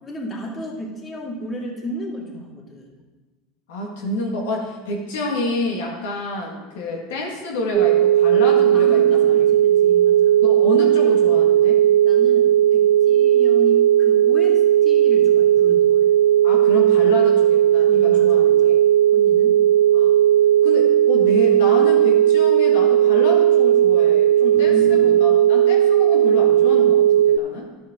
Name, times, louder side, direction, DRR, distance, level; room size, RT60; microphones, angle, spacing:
voice 1, 0.0-2.9 8.7-10.3 12.0-16.1 17.9-18.7 19.1-19.6 24.5-25.3, equal, 25° left, -1 dB, 2.2 m, -33 dB
voice 2, 3.7-9.4 10.4-11.8 16.4-18.8 19.9-20.1 20.6-27.7, left 2 dB, 80° left, -1 dB, 1.7 m, -28 dB
sound 1, 7.7-27.4, right 11 dB, 45° right, 0.3 m, -16 dB
10.5 x 8.4 x 3.6 m, 1.2 s
hypercardioid pair, 95°, 0 cm